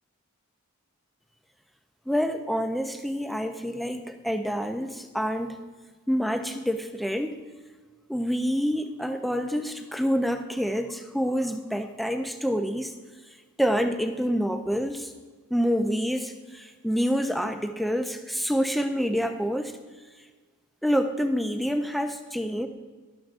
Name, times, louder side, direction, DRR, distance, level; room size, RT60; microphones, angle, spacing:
voice 1, 2.1-5.6 6.1-7.4 8.1-12.9 13.6-15.1 15.5-19.7 20.8-22.7, equal, ahead, 6 dB, 0.4 m, -27 dB
12.5 x 12.0 x 2.5 m, 1.4 s
head